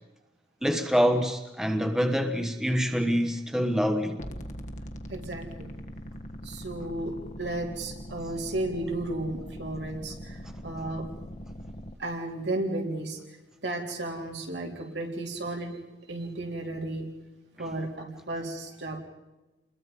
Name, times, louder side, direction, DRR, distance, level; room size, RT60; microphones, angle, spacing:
voice 1, 0.6-4.2, equal, 5° right, 1.1 m, -25 dB
sound 1, 4.2-11.9, equal, 40° left, 1.3 m, -41 dB
voice 2, 5.1-5.7 6.4-11.1 12.0-13.2 13.6-15.8 16.1-17.1 17.6-19.0, right 2 dB, 75° right, 3.8 m, -33 dB
29.0 x 21.5 x 5.4 m
head